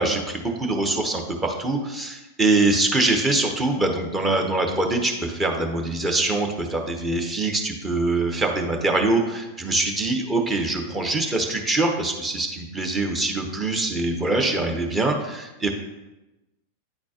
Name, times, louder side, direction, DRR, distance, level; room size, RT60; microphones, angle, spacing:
voice 1, 0.0-15.7, right 2 dB, 15° right, 2 dB, 0.9 m, -24 dB
8.7 x 4.3 x 2.9 m, 1.0 s
figure-of-eight pair, 90°, 0 cm